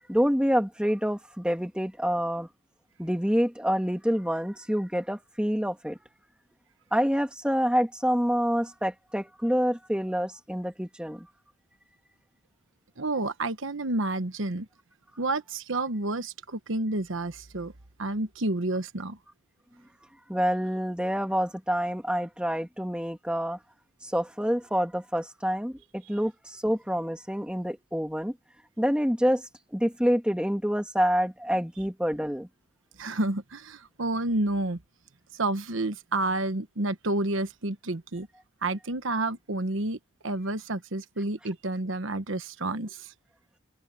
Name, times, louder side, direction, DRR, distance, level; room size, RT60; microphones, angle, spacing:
voice 1, 0.1-2.5 3.0-6.0 6.9-11.3 20.3-23.6 24.0-28.3 28.8-32.5, equal, 5° right, 2.3 m, -27 dB
voice 2, 13.0-14.7 15.2-17.7 18.0-19.2 33.0-34.8 35.3-38.3 38.6-40.0 40.2-43.1, right 2 dB, 75° right, 1.2 m, -30 dB
open air
head